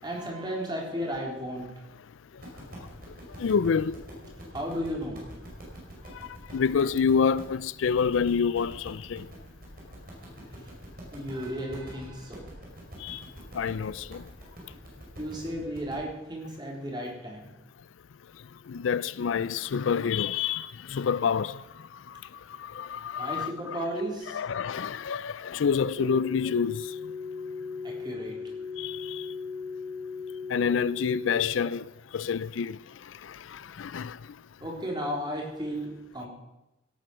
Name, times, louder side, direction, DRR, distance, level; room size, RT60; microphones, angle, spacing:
voice 1, 0.0-1.7 4.5-5.2 11.1-12.4 15.2-17.5 23.2-24.4 27.8-28.4 34.6-36.3, equal, 25° right, 3.9 m, -34 dB
sound 1, 2.4-16.0, right 1 dB, 50° right, 5.1 m, -46 dB
voice 2, 3.4-3.9 6.5-9.3 13.0-13.2 13.5-14.2 18.7-21.6 22.6-23.8 24.3-26.8 28.8-29.2 30.5-31.8 32.1-32.8 33.5-34.2, left 6 dB, 80° left, 0.4 m, -27 dB
sound 2, 26.0-31.4, left 4 dB, 65° right, 1.4 m, -37 dB
17.0 x 9.1 x 6.2 m
head